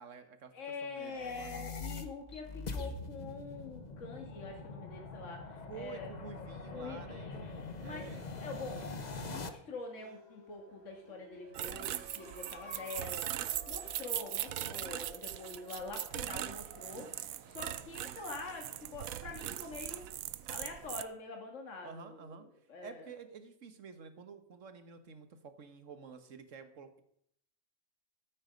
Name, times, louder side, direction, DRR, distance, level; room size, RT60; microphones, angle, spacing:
voice 1, 0.0-0.5 0.8-1.7 5.7-8.2 21.8-22.4 22.8-27.0, right 6 dB, 65° right, 9 dB, 1.6 m, -50 dB
voice 2, 0.5-6.1 6.7-7.5 7.8-8.0 8.4-8.9 9.3-20.2 20.5-23.1, left 3 dB, 65° left, 2 dB, 2.1 m, -45 dB
sound 1, 1.0-9.5, left 3 dB, 35° left, 1.0 m, -43 dB
sound 2, 9.7-19.2, equal, 20° right, 2.0 m, -55 dB
sound 3, 11.5-21.0, right 12 dB, 90° right, 1.1 m, -40 dB
13.5 x 8.7 x 5.2 m, 0.69 s
omnidirectional pair, 1.4 m